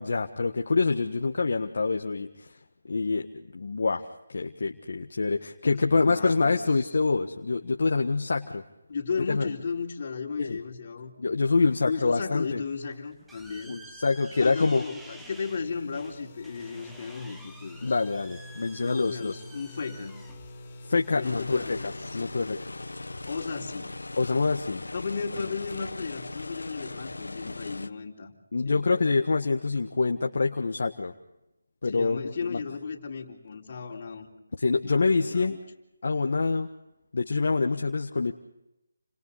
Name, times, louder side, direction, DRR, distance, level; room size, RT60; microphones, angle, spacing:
voice 1, 0.0-2.5 2.8-8.6 9.3-9.5 10.4-10.6 11.2-12.6 13.7-14.8 17.8-19.4 20.8-22.7 24.2-24.8 27.4-27.5 28.5-31.1 31.8-32.6 34.6-35.6 36.0-36.7 37.1-38.3, left 4 dB, 60° left, 3 dB, 1.5 m, -26 dB
voice 2, 5.7-6.9 8.9-11.1 11.9-13.8 14.4-18.0 18.8-20.2 21.2-22.2 23.3-23.9 24.9-28.3 28.6-28.8 31.8-34.3 34.8-35.6, left 5 dB, 45° left, 0 dB, 4.0 m, -35 dB
sound 1, 12.7-21.7, right 1 dB, 5° right, 1.2 m, -51 dB
sound 2, 13.8-25.6, left 1 dB, 25° left, 6.1 m, -48 dB
sound 3, 21.2-27.9, left 2 dB, 90° left, 1.4 m, -39 dB
30.0 x 26.5 x 4.1 m, 0.89 s
figure-of-eight pair, 165°, 0 cm